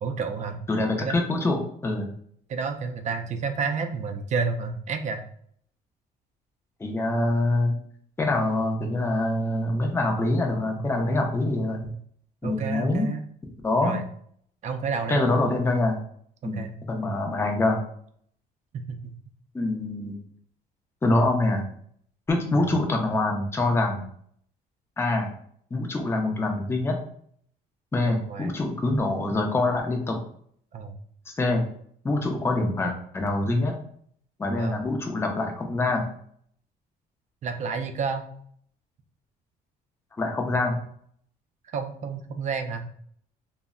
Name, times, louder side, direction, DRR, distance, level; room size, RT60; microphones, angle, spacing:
voice 1, 0.0-0.6 1.0-1.2 2.5-5.2 12.4-13.2 13.8-14.0 14.6-15.6 16.4-16.8 18.7-19.1 22.5-22.7 28.0-28.5 30.7-30.9 34.6-34.8 37.4-38.3 41.6-42.9, right 5 dB, 45° right, 6 dB, 0.4 m, -30 dB
voice 2, 0.7-2.1 6.8-7.7 8.2-11.9 12.4-13.1 13.6-13.9 15.1-16.0 16.4-17.8 19.5-20.2 21.0-21.7 22.3-24.0 25.0-25.3 25.7-27.0 27.9-30.2 31.3-31.7 32.0-33.8 34.4-36.0 40.2-40.8, left 2 dB, 15° left, 2 dB, 0.5 m, -25 dB
2.1 x 2.0 x 3.6 m, 0.63 s
cardioid pair, 110°, 17 cm